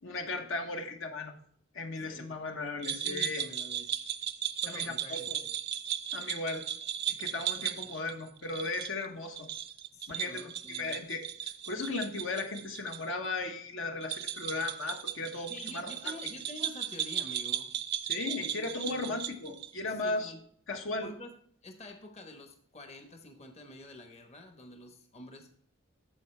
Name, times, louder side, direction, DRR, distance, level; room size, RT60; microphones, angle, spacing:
voice 1, 0.0-1.3 1.7-3.5 4.7-5.4 6.1-6.7 7.2-9.5 10.1-16.1 18.1-20.3 20.7-21.1, left 3 dB, 65° left, 3 dB, 1.1 m, -36 dB
voice 2, 2.1-2.4 3.0-4.1 4.6-5.6 7.6-8.0 9.9-11.1 15.5-17.8 18.3-19.2 19.8-20.4 21.0-21.4 21.6-25.5, left 1 dB, 30° left, 4 dB, 1.0 m, -48 dB
sound 1, 2.8-13.0 13.2-13.3 14.0-19.8, right 10 dB, 55° right, 0.6 m, -36 dB
14.0 x 4.7 x 3.3 m, 0.62 s
head